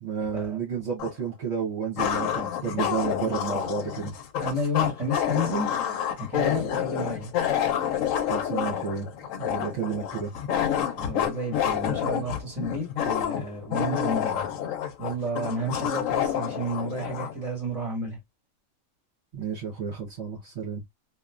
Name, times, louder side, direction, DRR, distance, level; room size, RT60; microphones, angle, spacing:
voice 1, 0.0-4.1 8.2-9.1 9.4-10.3 19.3-20.8, right 6 dB, 60° right, 1.2 m, -31 dB
sound 1, 1.0-1.1 2.0-17.4, left 9 dB, 80° left, 0.9 m, -28 dB
voice 2, 4.4-5.7 6.2-7.3 11.0-14.5 15.0-18.2, equal, 25° right, 1.7 m, -31 dB
2.9 x 2.4 x 2.3 m
omnidirectional pair, 1.4 m